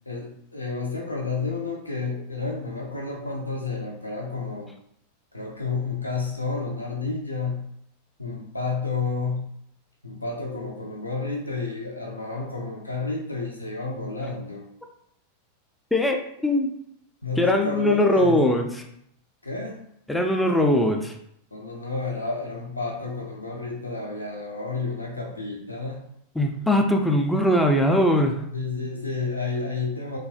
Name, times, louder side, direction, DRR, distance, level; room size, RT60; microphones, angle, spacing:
voice 1, 0.1-4.7 5.3-7.6 8.2-9.5 10.0-14.7 17.2-18.6 19.4-19.8 21.5-26.0 28.5-30.2, left 3 dB, 85° left, -1 dB, 0.5 m, -30 dB
voice 2, 15.9-16.8 17.4-18.7 20.1-21.1 26.4-28.4, left 1 dB, 5° left, 2 dB, 0.3 m, -21 dB
3.0 x 2.3 x 2.6 m, 0.72 s
figure-of-eight pair, 90°, 0 cm